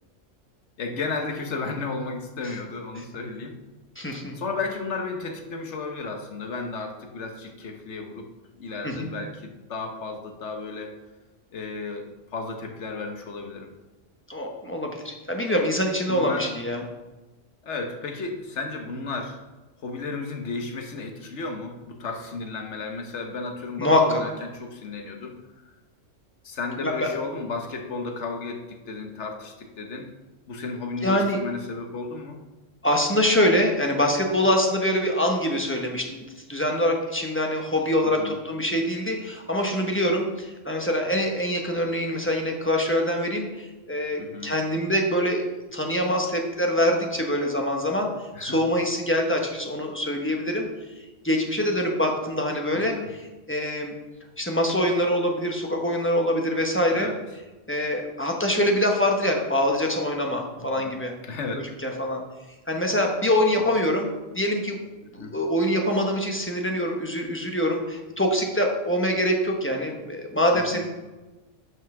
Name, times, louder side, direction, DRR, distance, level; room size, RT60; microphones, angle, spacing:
voice 1, 0.8-3.5 4.3-8.3 8.6-11.0 11.5-12.1 12.3-13.7 16.1-16.5 17.6-19.4 19.8-25.6 26.4-30.1 30.5-32.4 38.0-38.3 44.2-44.5 48.3-48.6 52.7-53.1 56.9-57.2 60.6-60.9 61.2-61.6 63.6-63.7 65.2-65.3 70.5-70.8, left 3 dB, 70° left, 4 dB, 1.3 m, -33 dB
voice 2, 4.0-4.4 8.8-9.1 14.3-16.8 23.8-24.2 26.8-27.1 31.0-31.4 32.8-45.4 45.7-48.1 48.4-50.7 51.2-53.9 54.4-57.1 57.7-61.1 61.8-62.2 62.7-64.1 64.3-64.8 65.1-70.8, left 1 dB, 10° left, 1 dB, 0.9 m, -24 dB
6.4 x 5.5 x 5.9 m, 1.1 s
omnidirectional pair, 1.3 m